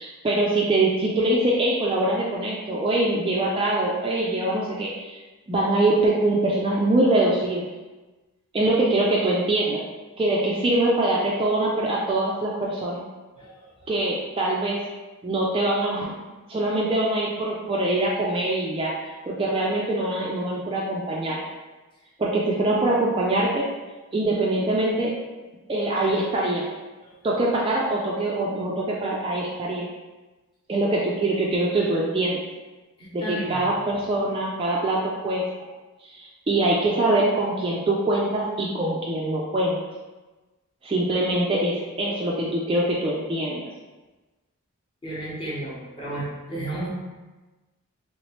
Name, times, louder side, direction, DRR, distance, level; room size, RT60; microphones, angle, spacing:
voice 1, 0.0-5.2 5.5-7.7 8.5-9.8 10.2-13.0 13.9-14.9 15.2-16.1 16.5-18.9 19.3-21.4 22.2-23.7 24.1-25.1 25.7-26.6 27.2-29.9 30.7-32.4 33.1-35.5 36.0-39.8 40.8-43.7, right 2 dB, 25° right, -4 dB, 0.3 m, -23 dB
voice 2, 13.4-13.9 27.0-27.1 33.2-33.7 45.0-46.9, right 1 dB, 20° left, -7 dB, 0.9 m, -33 dB
3.1 x 2.9 x 3.1 m, 1.2 s
head